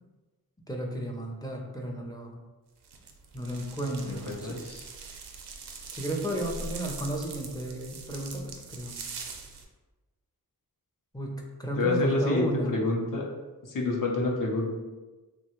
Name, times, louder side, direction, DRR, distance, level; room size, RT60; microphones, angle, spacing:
voice 1, 0.7-2.4 3.3-4.6 5.9-9.0 11.1-12.8, right 1 dB, 10° left, -1 dB, 0.5 m, -33 dB
sound 1, 2.8-9.6, right 4 dB, 80° right, 0.5 m, -42 dB
voice 2, 4.0-4.8 11.8-13.3 13.6-14.7, left 2 dB, 55° left, -1 dB, 0.7 m, -28 dB
3.0 x 2.2 x 2.9 m, 1.2 s
wide cardioid pair, 65°, 39 cm